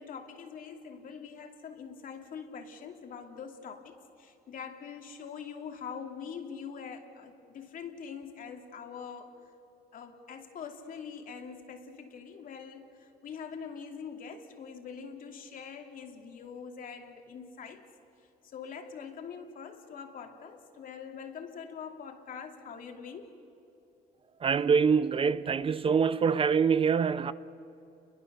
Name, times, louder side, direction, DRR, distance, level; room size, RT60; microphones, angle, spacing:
voice 1, 0.0-9.4 9.9-17.8 18.4-23.3, left 6 dB, 55° left, 2.7 m, -44 dB
voice 2, 24.4-27.3, right 6 dB, 35° right, 0.6 m, -25 dB
29.5 x 22.0 x 6.8 m
cardioid pair, 110°, 17 cm